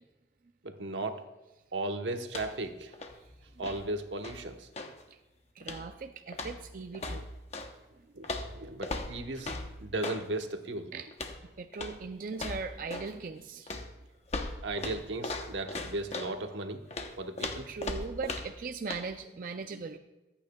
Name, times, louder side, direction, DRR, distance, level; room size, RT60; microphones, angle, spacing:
voice 1, 0.6-1.2 1.7-2.9 3.6-4.7 8.1-9.5 9.8-10.9 14.6-16.8 17.2-17.7, right 2 dB, 85° right, 5 dB, 1.1 m, -36 dB
sound 1, 2.2-2.7 2.9-5.0 5.6-6.0 6.3-7.7 8.2-10.3 11.1-11.4 11.7-12.0 12.3-13.2 13.7-16.4 16.9-18.6 18.9-19.1, left 2 dB, 35° left, 0.9 m, -38 dB
voice 2, 5.6-7.3 10.9-11.1 11.6-13.8 16.3-16.4 17.7-20.0, right 4 dB, 45° right, 6 dB, 0.5 m, -39 dB
24.0 x 9.0 x 2.3 m, 1.1 s
head